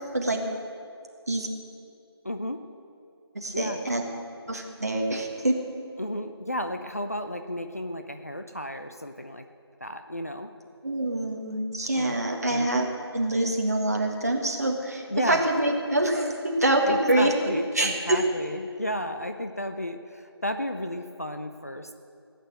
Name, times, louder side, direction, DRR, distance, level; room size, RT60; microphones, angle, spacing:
voice 1, 2.2-2.6 3.5-3.8 6.0-9.4 9.8-10.5 12.0-12.2 12.5-13.0 15.1-15.4 16.9-21.9, left 1 dB, 35° left, 7 dB, 0.5 m, -33 dB
voice 2, 3.3-4.0 4.5-5.6 10.8-12.9 13.1-17.3 17.7-18.2, right 1 dB, 35° right, 1 dB, 1.7 m, -25 dB
16.0 x 9.1 x 7.9 m, 2.6 s
figure-of-eight pair, 175°, 14 cm